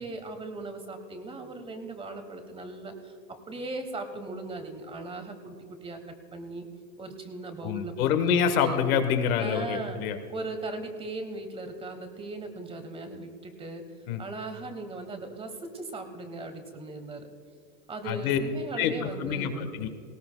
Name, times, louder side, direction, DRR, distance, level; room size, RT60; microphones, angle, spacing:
voice 1, 0.0-6.0 6.3-6.7 7.0-8.3 8.6-8.8 9.4-10.0 10.3-13.8 14.2-17.3 17.9-19.7, right 2 dB, 10° right, 7 dB, 1.2 m, -38 dB
voice 2, 7.6-10.2 14.1-14.2 18.0-18.4 18.8-19.9, left 7 dB, 65° left, 8 dB, 1.4 m, -26 dB
18.5 x 17.5 x 2.3 m, 2.2 s
hypercardioid pair, 130°, 46 cm